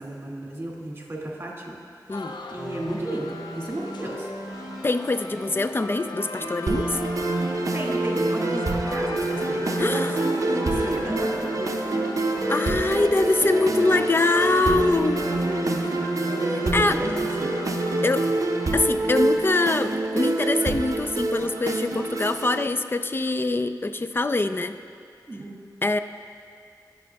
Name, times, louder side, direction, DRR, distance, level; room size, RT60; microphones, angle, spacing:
voice 1, 0.0-1.8 2.2-4.3 7.7-11.8 15.4-16.1 16.6-17.6 17.9-18.1 25.3-25.6, right 1 dB, 35° right, -3 dB, 2.1 m, -33 dB
sound 1, 2.1-18.8, left 2 dB, 85° left, 0.5 m, -37 dB
sound 2, 2.5-16.6, equal, ahead, 2.0 m, -40 dB
voice 2, 4.8-7.0 9.8-10.2 12.5-15.2 16.4-17.0 18.0-18.3 18.7-24.8 25.8-26.0, left 2 dB, 30° left, 9 dB, 0.5 m, -24 dB
sound 3, 6.7-22.7, right 2 dB, 50° right, 0.6 m, -26 dB
17.0 x 6.3 x 2.3 m, 2.3 s
cardioid pair, 40°, 7 cm